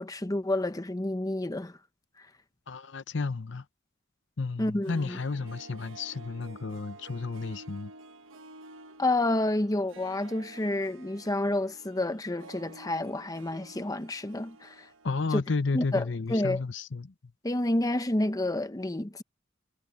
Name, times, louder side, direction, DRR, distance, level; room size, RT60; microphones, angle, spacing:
voice 1, 0.0-1.7 4.6-5.2 9.0-14.9 15.3-15.4 15.7-16.0 16.3-16.6 17.4-19.2, left 1 dB, 20° left, 0.8 m, -29 dB
voice 2, 2.7-3.6 4.4-7.9 15.0-17.1, left 4 dB, 65° left, 0.8 m, -32 dB
Harp, 4.7-15.7 15.9-16.0, right 2 dB, 85° right, 1.0 m, -51 dB
head